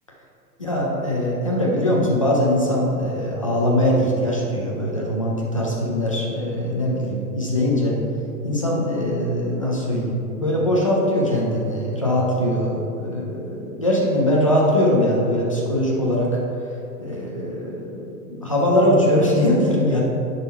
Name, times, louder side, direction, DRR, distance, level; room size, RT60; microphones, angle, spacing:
voice 1, 0.6-8.0 8.4-16.4 17.0-20.0, left 1 dB, 25° left, -4 dB, 0.3 m, -21 dB
10.0 x 3.9 x 4.0 m, 2.8 s
hypercardioid pair, 155°, 50 cm